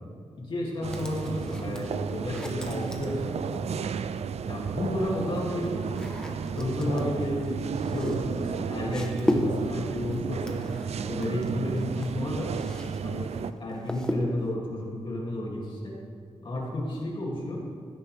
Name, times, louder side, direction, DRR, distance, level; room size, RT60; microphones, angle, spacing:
voice 1, 0.4-3.6 4.5-6.1 6.5-10.6 11.1-12.5 13.0-13.3 13.6-15.9 16.4-17.6, left 1 dB, 50° left, -4 dB, 2.5 m, -32 dB
sound 1, 0.8-13.5, right 6 dB, 75° right, 0.4 m, -33 dB
sound 2, 0.9-3.8 4.8-13.0 13.3-14.5, equal, 5° left, 1.0 m, -35 dB
16.0 x 13.0 x 3.4 m, 2.2 s
wide cardioid pair, 165°, 11 cm